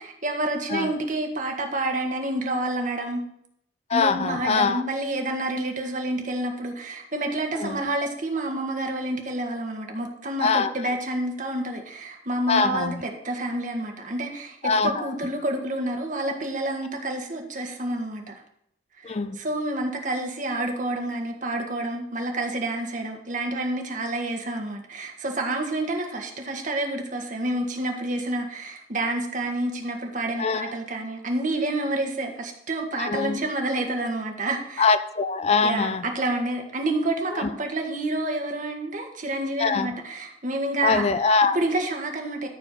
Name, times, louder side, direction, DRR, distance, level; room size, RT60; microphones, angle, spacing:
voice 1, 0.0-3.2 3.9-14.6 14.8-18.2 19.0-34.8 35.6-41.0 41.5-42.5, right 1 dB, 45° right, 1.6 m, -28 dB
voice 2, 3.9-4.8 7.6-7.8 10.4-10.7 12.5-13.0 14.6-14.9 19.0-19.4 30.4-30.7 33.0-33.4 34.8-36.0 37.3-37.5 39.6-39.9 40.8-41.6, left 4 dB, 35° left, 0.5 m, -23 dB
13.5 x 4.5 x 5.8 m
head